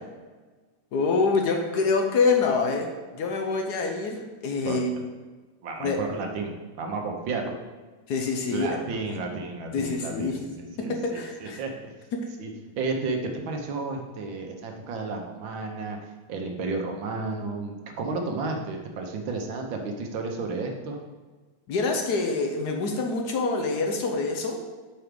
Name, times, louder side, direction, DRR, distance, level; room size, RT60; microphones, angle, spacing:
voice 1, 0.9-5.0 5.8-6.0 8.1-8.8 9.1-9.3 9.7-10.4 10.8-11.6 12.1-12.2 21.7-24.6, left 4 dB, 65° left, 3 dB, 1.2 m, -26 dB
voice 2, 5.6-7.5 8.5-11.9 12.4-12.5 12.8-13.2 13.4-16.0 16.3-21.0, right 3 dB, 85° right, 3 dB, 1.7 m, -32 dB
6.1 x 4.6 x 5.1 m, 1.3 s
omnidirectional pair, 2.1 m